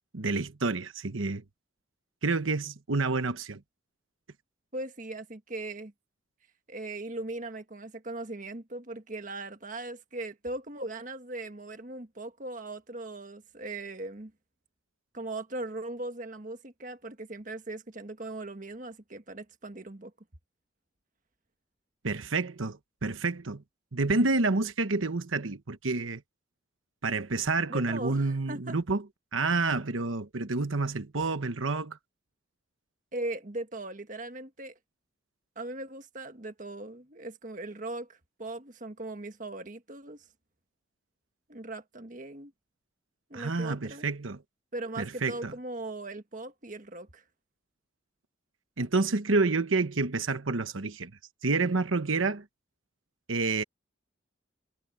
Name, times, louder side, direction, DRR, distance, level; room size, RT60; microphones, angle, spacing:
voice 1, 0.1-1.4 2.2-3.6 22.0-23.6 23.9-26.2 27.0-29.0 29.3-32.0 43.3-44.4 45.0-45.5 48.8-51.1 51.4-52.4 53.3-53.6, right 3 dB, 85° right, 1.2 m, -29 dB
voice 2, 4.7-5.9 6.7-14.3 15.1-20.1 27.7-28.8 33.1-34.8 35.5-40.2 41.5-42.5 43.3-44.1 44.7-47.2, right 2 dB, 40° right, 1.5 m, -39 dB
head